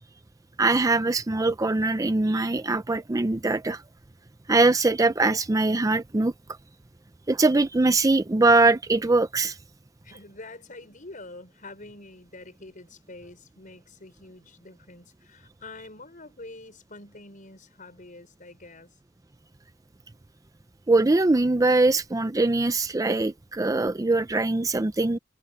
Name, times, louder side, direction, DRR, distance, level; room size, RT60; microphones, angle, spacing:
voice 1, 0.6-3.8 4.5-6.3 7.3-9.6 20.9-25.2, right 2 dB, 20° right, 0.5 m, -22 dB
voice 2, 10.0-19.0, left 2 dB, 45° left, 5.8 m, -46 dB
head